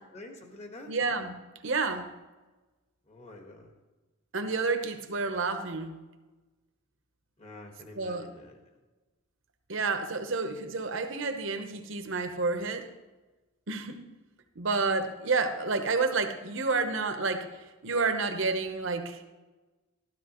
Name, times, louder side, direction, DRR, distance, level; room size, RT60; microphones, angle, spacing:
voice 1, 0.1-0.9 3.1-3.7 7.4-8.5, left 2 dB, 30° left, 3 dB, 1.4 m, -47 dB
voice 2, 0.9-1.3 1.6-2.1 4.3-6.0 7.9-8.3 9.7-12.9 13.7-14.0 14.6-19.2, right 4 dB, 60° right, 7 dB, 1.0 m, -30 dB
13.0 x 12.5 x 3.0 m, 1.2 s
head